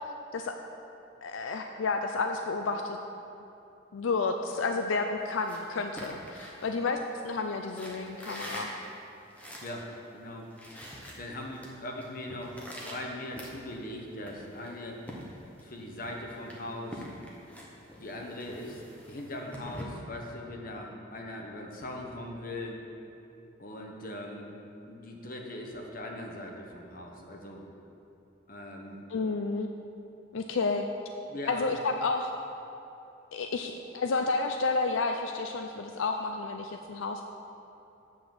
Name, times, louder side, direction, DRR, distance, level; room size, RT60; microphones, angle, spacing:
voice 1, 1.2-3.0 3.9-8.7 29.1-29.7 30.3-30.9 31.5-32.3 33.3-37.3, left 3 dB, 80° left, 5 dB, 0.5 m, -31 dB
sound 1, 5.2-7.3 7.7-9.9 10.2-10.3 10.5-11.7 12.0-13.9 14.3-15.7 16.0-19.8, equal, 5° left, 1.1 m, -45 dB
voice 2, 10.1-10.8 11.2-15.0 15.6-17.1 18.0-22.8 23.6-24.5 24.9-27.6 28.5-29.0 31.3-31.7, left 1 dB, 45° left, 0 dB, 1.1 m, -40 dB
7.8 x 6.1 x 7.1 m, 2.8 s
head